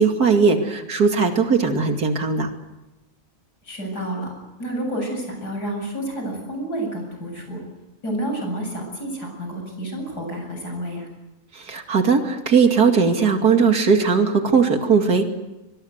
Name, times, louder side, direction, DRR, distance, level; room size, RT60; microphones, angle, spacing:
voice 1, 0.0-2.5 11.5-15.2, right 5 dB, 75° right, 5 dB, 2.9 m, -18 dB
voice 2, 3.6-4.3 4.6-7.6 8.0-11.1, right 1 dB, 90° left, 2 dB, 8.5 m, -29 dB
25.5 x 22.0 x 8.1 m, 1.0 s
omnidirectional pair, 1.7 m